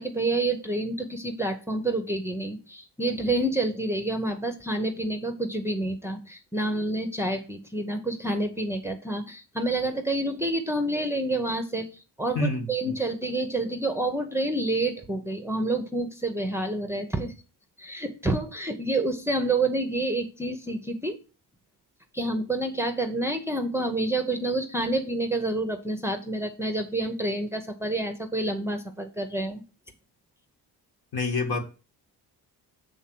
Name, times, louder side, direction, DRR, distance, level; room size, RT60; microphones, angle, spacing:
voice 1, 0.0-11.9 12.2-17.3 17.8-21.2 22.1-29.6, right 2 dB, 5° right, 5 dB, 0.7 m, -28 dB
voice 2, 12.3-13.0 31.1-31.6, left 2 dB, 65° left, 4 dB, 1.8 m, -27 dB
7.1 x 3.8 x 6.0 m, 0.33 s
cardioid pair, 130°, 40 cm